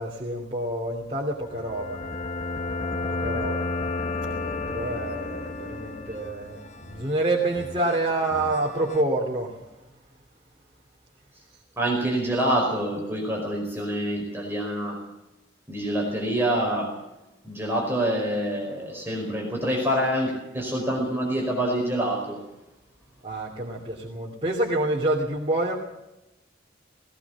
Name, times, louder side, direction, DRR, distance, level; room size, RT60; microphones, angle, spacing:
voice 1, 0.0-2.0 3.2-3.7 4.2-9.5 23.2-25.7, right 2 dB, 30° right, -1 dB, 2.9 m, -27 dB
sound 1, 1.5-9.0, left 3 dB, 40° left, 0.8 m, -33 dB
voice 2, 11.8-15.0 15.7-16.9 17.4-22.4, right 1 dB, 10° right, -1 dB, 5.0 m, -26 dB
19.5 x 18.0 x 7.3 m, 0.97 s
head